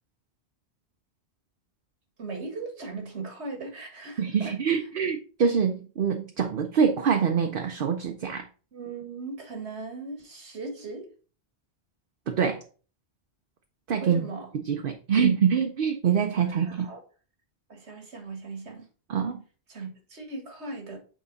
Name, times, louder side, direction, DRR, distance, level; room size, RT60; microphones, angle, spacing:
voice 1, 2.2-4.2 8.7-11.1 14.0-14.5 16.5-17.0 17.7-18.9 19.7-21.0, right 3 dB, 90° right, 1.9 m, -38 dB
voice 2, 4.2-8.5 12.3-12.6 13.9-14.3 14.7-16.9 19.1-19.4, right 7 dB, 60° right, 0.8 m, -25 dB
6.2 x 4.1 x 4.0 m
omnidirectional pair, 1.1 m